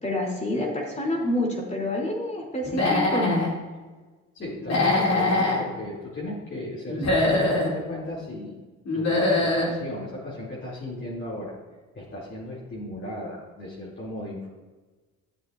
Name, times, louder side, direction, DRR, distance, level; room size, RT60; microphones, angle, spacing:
voice 1, 0.0-3.5, left 1 dB, 25° left, -1 dB, 3.1 m, -27 dB
Human voice / Animal, 2.6-3.5 4.6-5.6 6.9-7.7 8.9-9.7, left 2 dB, 60° left, 2.7 m, -23 dB
voice 2, 4.3-8.6 8.9-11.5 11.9-14.5, left 1 dB, 40° left, -7 dB, 2.9 m, -36 dB
13.0 x 7.7 x 2.6 m, 1.3 s
cardioid pair, 90°, 30 cm